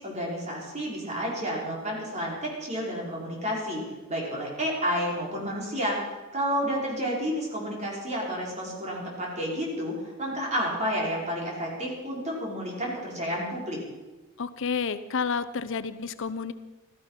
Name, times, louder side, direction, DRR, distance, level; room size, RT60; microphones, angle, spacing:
voice 1, 0.0-3.8 4.1-6.0 6.3-13.8, equal, 35° right, -3 dB, 5.1 m, -30 dB
voice 2, 14.4-16.5, left 5 dB, 60° left, 14 dB, 0.6 m, -30 dB
16.0 x 13.5 x 5.7 m, 1.1 s
head